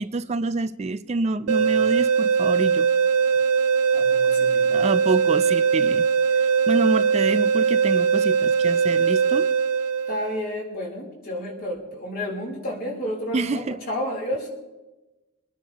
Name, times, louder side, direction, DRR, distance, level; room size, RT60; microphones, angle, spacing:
voice 1, 0.0-2.9 4.7-6.1 6.3-9.5 13.3-13.8, right 3 dB, 30° right, 0.4 m, -27 dB
sound 1, 1.5-10.4, right 6 dB, 80° right, 0.5 m, -21 dB
voice 2, 3.9-4.8 10.1-14.5, left 1 dB, 40° left, 3.6 m, -31 dB
25.5 x 10.0 x 3.0 m
head